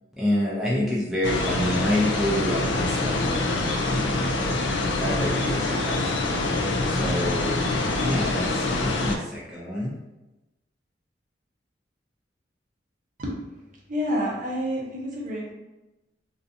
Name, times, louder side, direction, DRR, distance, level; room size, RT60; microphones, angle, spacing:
voice 1, 0.2-3.4 3.8-4.2 4.9-6.1 6.8-10.0, left 1 dB, ahead, -7 dB, 0.4 m, -28 dB
sound 1, 1.2-9.2, left 2 dB, 90° left, 0.4 m, -25 dB
voice 2, 13.9-15.5, equal, 45° right, -3 dB, 0.6 m, -28 dB
2.5 x 2.2 x 2.5 m, 1.0 s
head